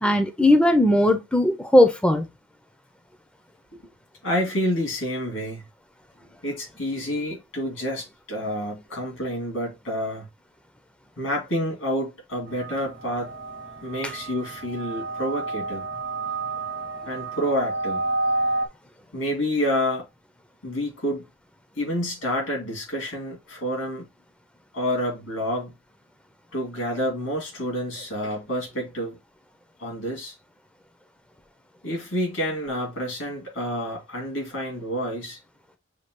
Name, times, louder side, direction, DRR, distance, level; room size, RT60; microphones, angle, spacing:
voice 1, 0.0-2.3, left 1 dB, 5° left, 0.5 m, -18 dB
voice 2, 4.2-5.7 6.4-10.3 11.2-13.3 13.8-15.9 17.0-18.0 19.1-20.0 20.6-21.2 21.8-24.1 24.7-25.7 26.5-29.2 29.8-30.4 31.8-35.4, equal, 90° left, 2.6 m, -28 dB
sound 1, 12.5-18.7, right 2 dB, 70° right, 0.9 m, -30 dB
6.5 x 2.3 x 2.9 m
head